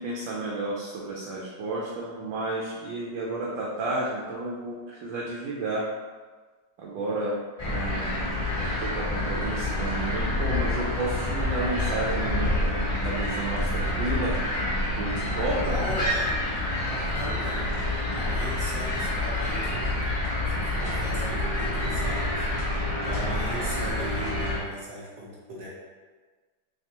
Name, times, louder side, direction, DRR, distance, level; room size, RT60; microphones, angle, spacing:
voice 1, 0.0-5.8 6.8-8.2 8.5-14.4 15.0-15.8, right 2 dB, 80° right, -5 dB, 1.3 m, -32 dB
sound 1, 7.6-24.6, left 1 dB, 35° left, 0.5 m, -28 dB
voice 2, 15.6-16.4 16.8-20.0 20.5-22.6 23.0-25.7, equal, 55° right, -6 dB, 1.1 m, -38 dB
3.3 x 3.2 x 2.8 m, 1.4 s
omnidirectional pair, 2.0 m